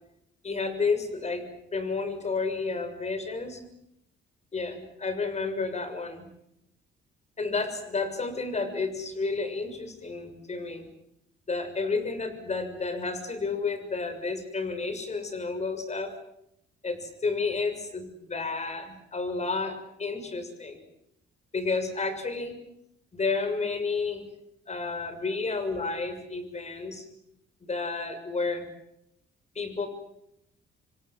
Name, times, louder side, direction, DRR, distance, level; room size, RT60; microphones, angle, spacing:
voice 1, 0.4-1.4 1.7-3.6 4.5-6.3 7.4-10.8 11.5-16.1 16.8-20.8 21.5-22.6 23.1-24.3 24.7-27.0 27.7-28.7 29.5-29.9, left 4 dB, 35° left, 9 dB, 6.7 m, -31 dB
28.0 x 25.0 x 7.7 m, 0.79 s
cardioid pair, 90°, 20 cm